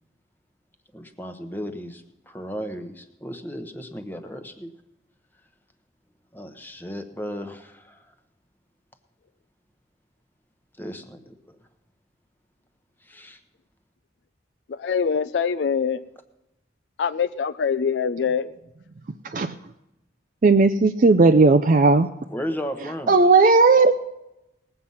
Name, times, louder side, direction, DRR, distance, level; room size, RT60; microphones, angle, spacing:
voice 1, 0.9-4.7 6.3-8.1 10.8-11.6 13.0-13.4 22.3-23.2, equal, 10° left, 7 dB, 0.9 m, -35 dB
voice 2, 14.7-16.0 17.0-18.5, left 6 dB, 65° left, 12 dB, 0.4 m, -24 dB
voice 3, 20.4-22.1 23.1-24.0, right 3 dB, 45° right, 9 dB, 0.4 m, -16 dB
19.5 x 7.8 x 5.5 m, 0.92 s
head